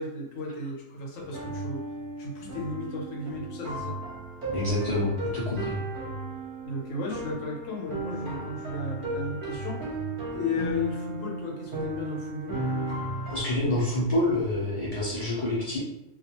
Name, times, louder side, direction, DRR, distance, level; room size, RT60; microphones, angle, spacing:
voice 1, 0.0-1.9 2.2-4.0 6.6-9.8 10.3-12.6, left 2 dB, 80° left, 0 dB, 1.0 m, -34 dB
sound 1, 1.2-13.4, right 1 dB, 50° right, 0.8 m, -35 dB
voice 2, 4.5-5.7 13.3-15.8, left 1 dB, 55° left, -7 dB, 0.4 m, -27 dB
2.3 x 2.2 x 2.8 m, 0.87 s
omnidirectional pair, 1.4 m